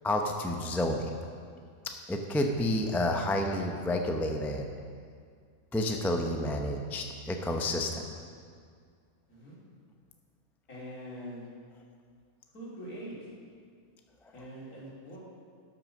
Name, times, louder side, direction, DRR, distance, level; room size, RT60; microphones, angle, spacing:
voice 1, 0.0-1.2 2.1-4.7 5.7-8.0, left 1 dB, 5° left, 3 dB, 0.3 m, -30 dB
voice 2, 10.7-11.4 12.5-13.2 14.3-15.2, equal, 80° left, -7 dB, 3.4 m, -43 dB
12.0 x 6.2 x 6.4 m, 2.1 s
omnidirectional pair, 1.5 m